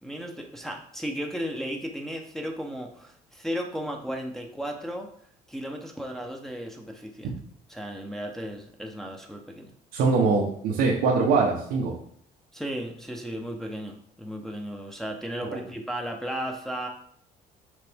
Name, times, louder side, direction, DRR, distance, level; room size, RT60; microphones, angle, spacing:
voice 1, 0.0-5.1 5.5-7.3 7.7-9.7 12.5-16.9, equal, ahead, 0 dB, 0.9 m, -35 dB
voice 2, 9.9-11.9 15.5-15.6, right 4 dB, 85° right, -2 dB, 1.2 m, -23 dB
6.6 x 4.1 x 3.6 m, 0.65 s
cardioid pair, 110°, 17 cm